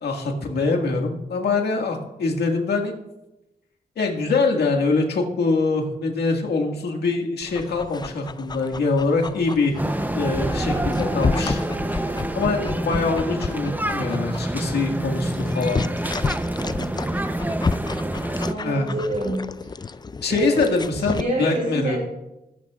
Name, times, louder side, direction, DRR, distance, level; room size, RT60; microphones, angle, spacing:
voice 1, 0.0-2.9 4.0-9.8 10.1-11.6 11.9-15.8 18.6-18.9 20.2-22.0, left 3 dB, 85° left, 2 dB, 1.9 m, -24 dB
Dog, 7.4-21.2, left 4 dB, 25° left, 0.4 m, -32 dB
sound 1, 9.8-18.5, right 1 dB, 10° right, 0.7 m, -27 dB
voice 2, 18.4-19.4 19.8-19.9 20.3-20.7 21.0-22.0, right 1 dB, 65° right, -6 dB, 4.4 m, -27 dB
20.5 x 9.4 x 2.4 m, 0.94 s
cardioid pair, 70°, 16 cm